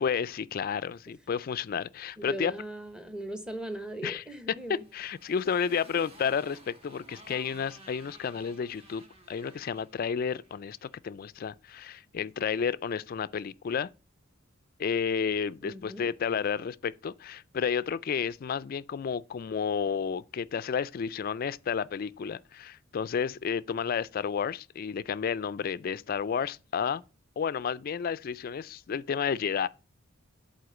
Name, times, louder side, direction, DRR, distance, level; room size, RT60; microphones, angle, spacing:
voice 1, 0.0-2.5 4.0-4.2 4.9-13.9 14.8-27.0 27.4-29.7, left 7 dB, 45° left, 0.3 m, -31 dB
voice 2, 2.2-4.8 5.4-5.5 15.6-16.1, right 1 dB, 5° right, 0.9 m, -39 dB
Motorcycle, 4.5-11.0, right 1 dB, 30° right, 1.6 m, -54 dB
7.9 x 4.3 x 6.9 m
head